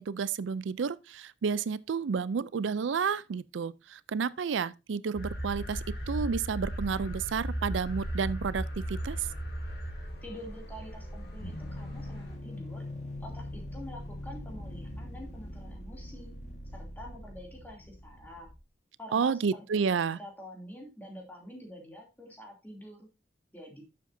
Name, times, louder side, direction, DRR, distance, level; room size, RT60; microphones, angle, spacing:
voice 1, 0.0-9.3 19.1-20.2, right 6 dB, 85° right, 0.4 m, -31 dB
sound 1, 5.1-12.4, equal, 55° left, 2.9 m, -37 dB
voice 2, 10.2-12.8 13.2-16.4 16.7-18.5 19.0-23.1 23.5-23.8, equal, 10° left, 2.7 m, -47 dB
sound 2, 11.4-18.6, left 1 dB, 40° left, 1.6 m, -42 dB
11.5 x 7.5 x 2.7 m
head